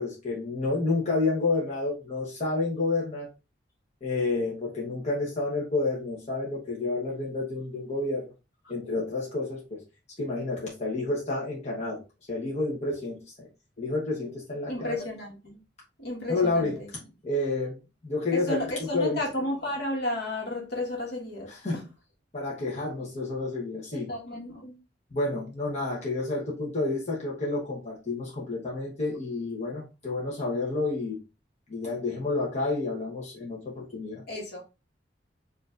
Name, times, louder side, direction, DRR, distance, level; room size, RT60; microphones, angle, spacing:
voice 1, 0.0-3.3 4.0-8.3 8.7-9.8 10.2-12.0 12.3-13.5 13.8-14.9 16.3-16.8 17.2-17.8 18.0-18.6 18.9-19.2 21.5-21.8 22.3-24.1 25.1-31.2 31.7-34.2, left 3 dB, 40° left, 1.0 m, -29 dB
voice 2, 14.7-15.6 16.0-16.9 18.3-21.8 23.9-24.7 34.3-34.6, left 1 dB, 60° left, 1.4 m, -33 dB
4.6 x 2.6 x 2.4 m
head